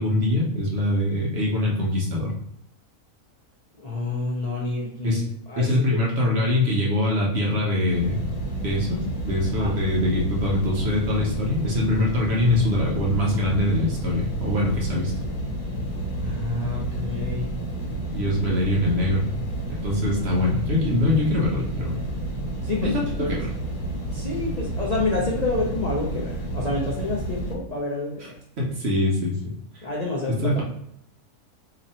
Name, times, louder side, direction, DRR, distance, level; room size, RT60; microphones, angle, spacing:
voice 1, 0.0-2.3 5.0-5.2 5.6-8.2 8.6-15.1 18.1-19.3 19.8-22.0 22.8-23.5 28.6-29.4 30.4-30.6, left 1 dB, 55° right, -3 dB, 0.9 m, -23 dB
voice 2, 3.8-5.8 9.6-9.7 16.2-17.5 22.6-23.4 24.1-28.3 29.8-30.6, left 2 dB, 50° left, -4 dB, 0.5 m, -28 dB
sound 1, 7.9-27.5, right 1 dB, 70° left, 1.3 m, -30 dB
2.9 x 2.6 x 4.1 m, 0.74 s
omnidirectional pair, 1.6 m